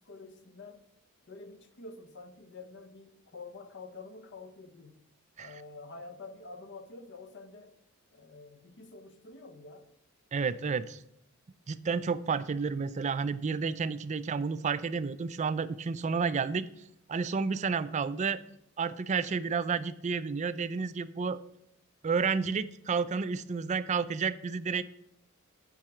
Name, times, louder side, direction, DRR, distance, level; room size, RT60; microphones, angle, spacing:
voice 1, 0.1-0.8 1.3-5.0 5.4-7.8 8.1-9.9, left 3 dB, 55° left, 0.8 m, -48 dB
voice 2, 10.3-11.0 11.7-16.7 17.1-18.4 18.8-21.4 22.0-24.8, right 5 dB, 35° right, 0.4 m, -31 dB
7.4 x 4.9 x 6.5 m
head